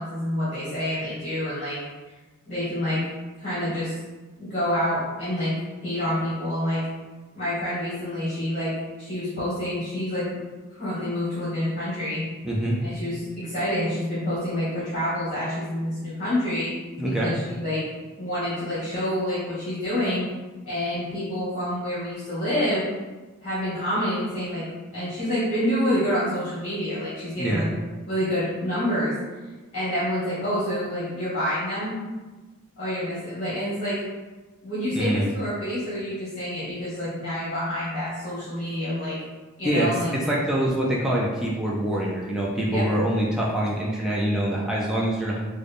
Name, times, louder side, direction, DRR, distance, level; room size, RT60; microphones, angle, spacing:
voice 1, 0.0-1.8 2.5-3.0 3.4-4.0 4.4-5.5 5.8-6.8 7.3-8.7 9.0-10.3 10.7-12.2 12.8-16.7 17.0-17.8 18.2-20.2 20.7-22.9 23.4-24.6 24.9-27.6 28.1-29.1 29.7-32.0 32.8-34.0 34.6-39.2 39.6-40.1 42.7-42.8, equal, 35° left, -11 dB, 1.3 m, -27 dB
voice 2, 12.4-12.8 17.0-17.3 27.4-27.6 34.9-35.3 39.6-45.4, right 1 dB, 5° right, -5 dB, 0.3 m, -25 dB
3.7 x 2.1 x 3.3 m, 1.3 s
head